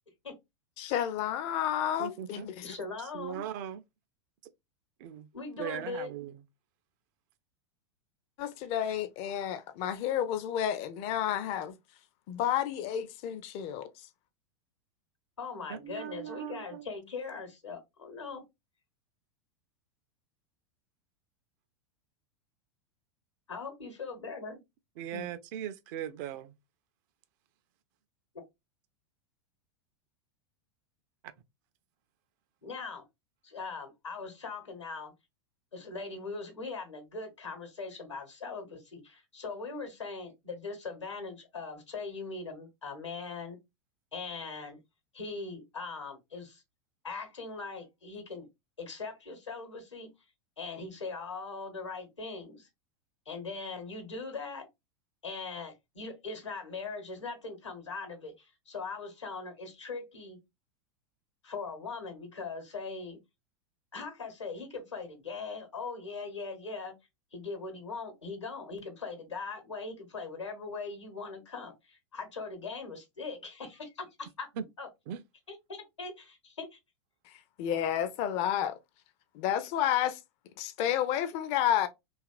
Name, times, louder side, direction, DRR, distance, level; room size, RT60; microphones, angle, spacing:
voice 1, 0.8-2.7 8.4-11.8 12.3-13.9 25.1-25.2 77.6-78.8 79.3-80.2 80.6-81.9, left 10 dB, 40° left, 0.4 m, -30 dB
voice 2, 2.0-2.5 3.1-3.8 5.0-5.3 5.6-6.4 15.7-16.9 25.0-26.5 74.6-74.7 75.1-75.2, right 10 dB, 45° right, 0.4 m, -39 dB
voice 3, 2.6-3.4 5.3-6.1 15.4-18.4 23.5-24.6 32.6-33.0 33.4-35.1 35.7-43.6 44.1-44.8 45.1-46.6 47.0-48.5 48.8-50.1 50.6-52.7 53.3-54.7 55.2-60.4 61.4-63.2 63.9-66.9 67.3-74.5 74.8-74.9 75.5-76.8, left 4 dB, 80° left, 1.0 m, -40 dB
2.8 x 2.4 x 2.3 m
figure-of-eight pair, 90°, 15 cm